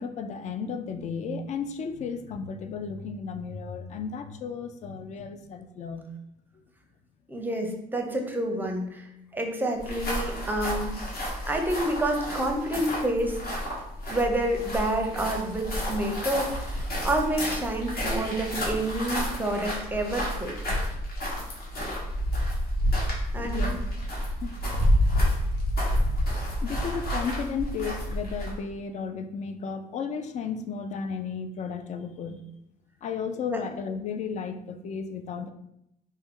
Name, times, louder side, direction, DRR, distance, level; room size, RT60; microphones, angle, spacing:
voice 1, 0.0-6.1 6.5-6.6 23.4-23.8 24.4-24.5 26.6-32.4 33.0-35.5, left 6 dB, 45° left, 8 dB, 0.4 m, -34 dB
voice 2, 7.3-9.1 9.3-11.0 11.5-13.4 14.1-20.5 23.3-23.8 33.5-33.6, right 1 dB, 10° right, 3 dB, 0.6 m, -28 dB
sound 1, 9.8-28.6, equal, 65° left, 1.4 m, -29 dB
4.4 x 2.1 x 3.6 m, 0.81 s
cardioid pair, 110°, 17 cm